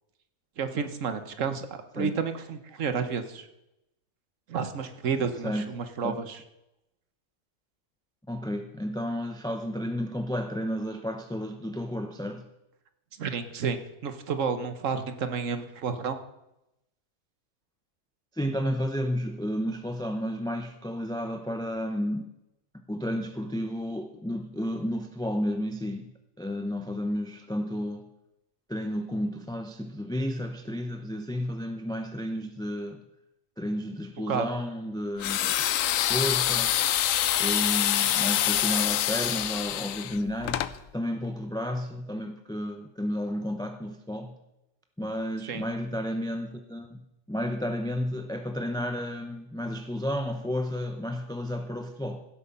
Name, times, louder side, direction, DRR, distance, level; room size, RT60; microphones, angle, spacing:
voice 1, 0.6-1.7 1.9-3.5 4.5-6.4 13.2-16.2 34.3-34.5 45.5-45.6, right 6 dB, 70° right, 1.4 m, -30 dB
voice 2, 8.3-12.5 18.3-22.3 22.7-28.1 28.7-33.0 33.6-35.5 36.1-36.8 37.4-44.4 45.0-52.2, equal, 5° left, 0.5 m, -32 dB
sound 1, 35.2-40.7, left 12 dB, 80° left, 1.0 m, -26 dB
15.5 x 8.3 x 5.5 m
omnidirectional pair, 1.4 m